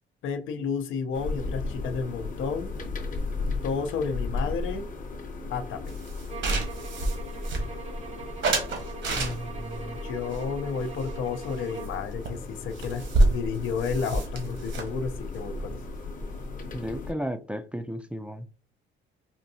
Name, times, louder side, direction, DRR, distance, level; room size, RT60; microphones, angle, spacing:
voice 1, 0.2-2.7 3.6-4.9 5.5-6.0 10.0-15.8, left 5 dB, 80° left, 0.6 m, -31 dB
sound 1, 1.1-17.1, left 3 dB, 40° left, 0.7 m, -36 dB
sound 2, 5.9-8.0 8.4-9.7 10.3-11.6 11.8-12.0 12.3-12.4 12.6-16.4, right 2 dB, 70° right, 1.2 m, -28 dB
sound 3, 6.3-12.1, right 5 dB, 35° right, 0.7 m, -43 dB
voice 2, 9.2-10.0 16.7-18.5, equal, 5° right, 0.3 m, -34 dB
4.3 x 2.6 x 2.6 m
cardioid pair, 90°, 20 cm